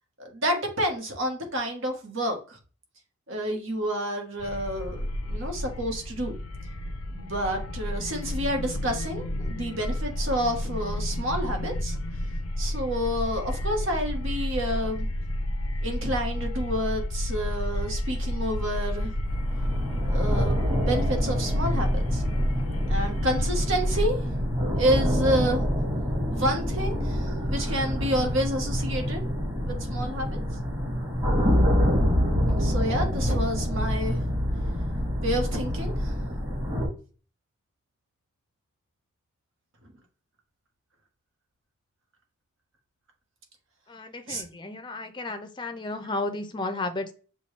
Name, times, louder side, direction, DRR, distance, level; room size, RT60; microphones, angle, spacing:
voice 1, 0.2-2.6 3.3-6.3 7.1-12.0 12.6-15.1 15.8-19.2 20.1-22.2 22.9-24.2 24.7-25.6 26.3-29.2 29.6-30.4 32.6-34.2 35.2-36.1 44.3-44.4, equal, 65° right, 3 dB, 1.2 m, -29 dB
sound 1, 4.4-24.1, left 1 dB, 85° left, 0.5 m, -30 dB
sound 2, 19.3-36.9, equal, 25° right, 1.9 m, -26 dB
voice 2, 43.9-47.1, left 2 dB, 20° left, 7 dB, 0.5 m, -33 dB
6.8 x 2.3 x 3.2 m, 0.37 s
head